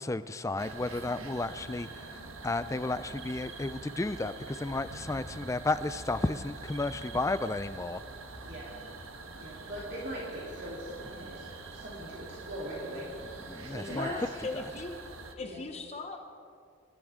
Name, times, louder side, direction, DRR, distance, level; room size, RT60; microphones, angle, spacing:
voice 1, 0.0-1.9 2.4-8.0 13.5-14.1, left 2 dB, 15° left, 13 dB, 0.3 m, -32 dB
sound 1, 0.6-15.3, right 3 dB, 80° right, 1.5 m, -45 dB
voice 2, 9.3-14.2 15.4-15.6, right 1 dB, 50° right, -6 dB, 3.3 m, -41 dB
voice 3, 13.9-15.0 15.4-16.2, left 2 dB, 30° left, 3 dB, 0.9 m, -37 dB
26.0 x 14.0 x 3.7 m, 2.5 s
head